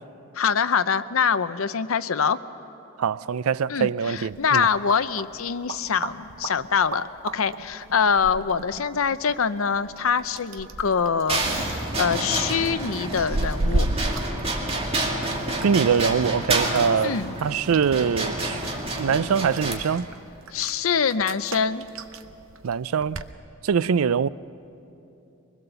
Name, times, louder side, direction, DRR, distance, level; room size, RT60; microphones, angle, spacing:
voice 1, 0.3-2.4 3.7-13.9 17.0-17.3 20.5-21.8, left 6 dB, 70° left, 0.6 m, -24 dB
voice 2, 3.0-4.7 15.6-17.1 17.4-18.6 19.0-20.1 22.6-23.2 23.6-24.3, right 6 dB, 85° right, 0.4 m, -23 dB
sound 1, 4.2-23.3, right 2 dB, 65° right, 0.8 m, -35 dB
sound 2, 11.3-19.8, right 2 dB, 30° right, 2.4 m, -28 dB
23.5 x 20.5 x 6.9 m
head